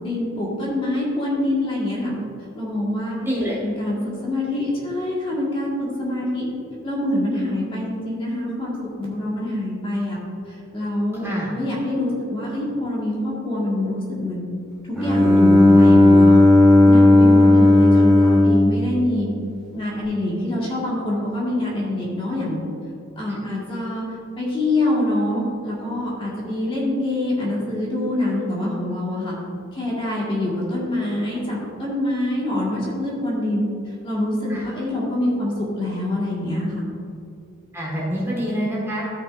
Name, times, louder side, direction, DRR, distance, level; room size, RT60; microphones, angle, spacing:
voice 1, 0.0-2.2 2.6-3.2 3.6-6.5 6.8-10.2 10.7-14.5 14.9-16.5 16.9-19.3 19.7-22.6 23.2-24.0 24.4-29.4 29.7-33.6 34.0-36.8, left 1 dB, 25° left, -5 dB, 1.9 m, -25 dB
voice 2, 3.2-3.6 11.2-11.5 23.3-23.4 34.5-34.6 37.7-39.0, equal, 10° right, -6 dB, 1.6 m, -26 dB
Bowed string instrument, 14.9-19.8, left 2 dB, 5° left, 1.8 m, -14 dB
13.5 x 5.9 x 2.6 m, 2.5 s
head